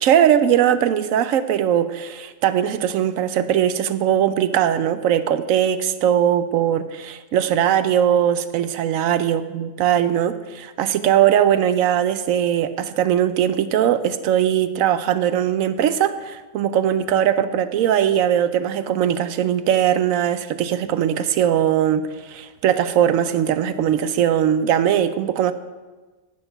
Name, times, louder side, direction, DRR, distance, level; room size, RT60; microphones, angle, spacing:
voice 1, 0.0-25.5, right 10 dB, 80° right, 12 dB, 1.0 m, -20 dB
11.0 x 7.9 x 5.8 m, 1.3 s
omnidirectional pair, 1.4 m